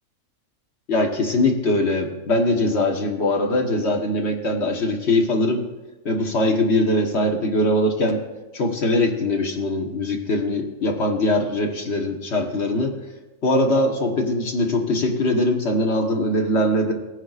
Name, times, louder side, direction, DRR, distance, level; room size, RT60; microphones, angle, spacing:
voice 1, 0.9-5.6 6.0-8.2 8.5-13.0 13.4-16.9, left 1 dB, 50° left, 2 dB, 1.4 m, -21 dB
18.5 x 9.7 x 2.5 m, 1.1 s
omnidirectional pair, 1.5 m